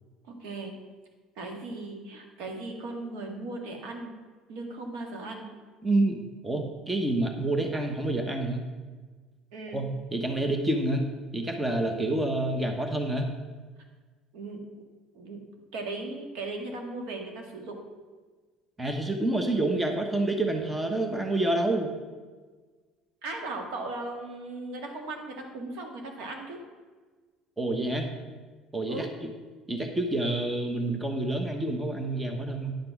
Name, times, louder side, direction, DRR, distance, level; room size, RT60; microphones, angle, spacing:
voice 1, 0.3-0.7 1.4-4.1 4.5-5.5 9.5-9.8 14.3-14.6 15.1-15.4 15.7-17.8 23.2-26.6 28.9-29.1, right 2 dB, 80° right, 3 dB, 2.0 m, -37 dB
voice 2, 5.8-8.6 9.7-11.0 11.3-13.3 18.8-21.9 27.6-28.1 28.7-29.1 29.7-32.7, right 2 dB, 10° right, 4 dB, 1.0 m, -28 dB
10.0 x 6.0 x 5.9 m, 1.4 s
cardioid pair, 135°, 0 cm